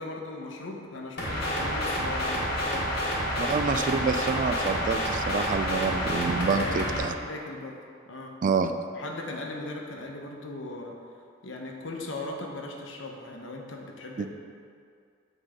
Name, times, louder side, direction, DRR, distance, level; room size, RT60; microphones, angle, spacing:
voice 1, 0.0-3.3 6.5-7.8 8.1-8.3 8.9-11.0 11.4-14.3, left 2 dB, 70° left, 1 dB, 0.9 m, -38 dB
sound 1, 1.2-7.0, equal, 55° left, 1.5 m, -29 dB
voice 2, 3.4-7.1 8.4-8.7 14.2-14.3, right 4 dB, 40° right, 8 dB, 0.3 m, -27 dB
7.8 x 4.0 x 5.0 m, 2.3 s
head